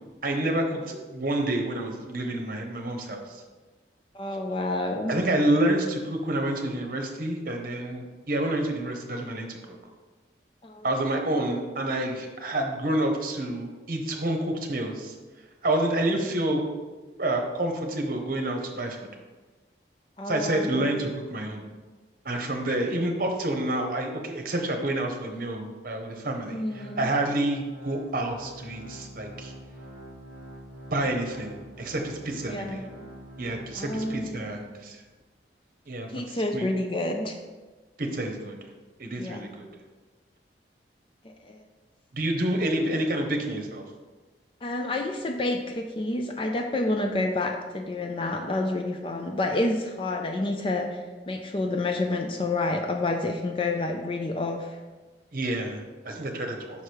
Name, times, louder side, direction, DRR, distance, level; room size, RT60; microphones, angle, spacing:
voice 1, 0.2-3.2 5.1-9.8 10.8-15.1 15.6-16.6 17.2-19.1 20.3-21.6 22.2-29.5 30.9-32.8 33.4-35.0 35.9-36.7 38.0-38.6 39.0-39.7 42.1-43.8 55.3-56.8, right 1 dB, 50° right, 3 dB, 0.9 m, -28 dB
voice 2, 4.1-5.2 10.6-10.9 20.2-20.9 26.5-27.2 32.5-32.9 33.7-34.5 36.1-37.4 39.2-39.4 41.2-41.6 44.6-54.8, left 2 dB, 30° left, 4 dB, 0.4 m, -29 dB
Organ, 26.6-34.7 35.1-35.2 35.8-35.9, right 1 dB, 80° left, 2.1 m, -44 dB
5.6 x 4.9 x 4.6 m, 1.3 s
head